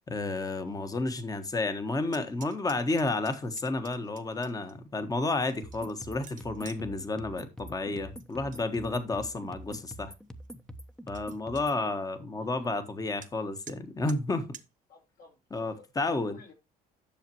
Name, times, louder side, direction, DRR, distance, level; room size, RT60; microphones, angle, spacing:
voice 1, 0.1-10.1 11.1-14.5 15.5-16.4, left 2 dB, 20° left, 1.4 m, -31 dB
sound 1, 2.1-4.7 5.3-6.8 8.2-8.6 9.0-9.5 10.0-10.1 10.4-10.5 10.8-10.9 11.1-11.6 13.2-13.3 13.7-13.8 14.1-14.2 14.5-14.7, right 9 dB, 50° right, 1.3 m, -50 dB
sound 2, 5.6-11.8, equal, 5° left, 1.0 m, -45 dB
voice 2, 12.3-12.7 14.9-15.9 16.3-16.5, left 4 dB, 60° left, 4.6 m, -55 dB
10.5 x 6.7 x 3.0 m
cardioid pair, 110°, 17 cm